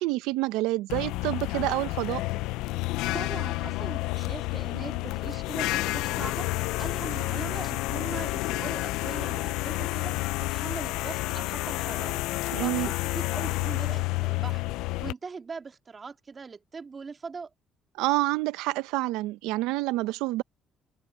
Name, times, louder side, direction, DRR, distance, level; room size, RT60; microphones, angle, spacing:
voice 1, 0.0-2.2 12.5-12.9 18.0-20.4, right 19 dB, 80° right, 1.1 m, -28 dB
sound 1, 0.9-15.1, left 19 dB, 80° left, 0.6 m, -30 dB
voice 2, 3.1-10.1 10.4-17.5, right 5 dB, 40° right, 2.1 m, -41 dB
supercardioid pair, 60°, 0 cm